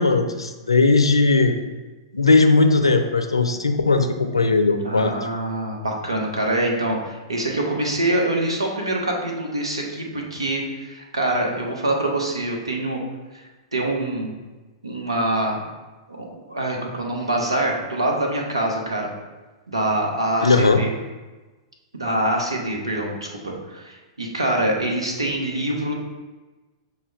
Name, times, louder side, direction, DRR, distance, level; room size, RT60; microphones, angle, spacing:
voice 1, 0.0-1.6 2.1-5.1 20.4-20.8, left 3 dB, 90° left, 7 dB, 0.4 m, -18 dB
voice 2, 4.8-13.0 13.3-14.3 14.8-15.6 16.1-19.1 19.7-20.9 21.9-25.9, right 1 dB, 85° right, 0 dB, 0.9 m, -25 dB
6.2 x 2.2 x 3.4 m, 1.2 s
figure-of-eight pair, 105°, 3 cm